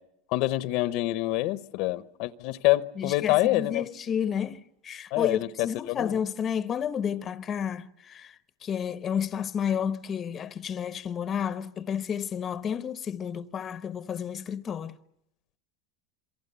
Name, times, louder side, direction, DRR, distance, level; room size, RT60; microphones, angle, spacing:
voice 1, 0.3-3.9 5.1-6.2, left 18 dB, 60° left, 0.9 m, -26 dB
voice 2, 3.0-15.0, left 8 dB, 30° left, 0.8 m, -31 dB
27.5 x 23.5 x 6.9 m
supercardioid pair, 130°, 0 cm